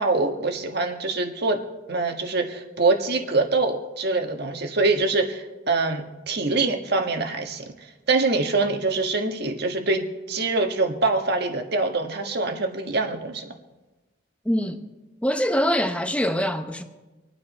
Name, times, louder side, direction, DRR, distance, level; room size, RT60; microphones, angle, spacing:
voice 1, 0.0-1.6 1.9-7.7 8.1-10.0 10.3-13.5, right 3 dB, 55° right, 1.5 m, -24 dB
voice 2, 14.4-14.9 15.2-16.8, equal, 5° left, 0.9 m, -24 dB
26.0 x 9.4 x 4.3 m
head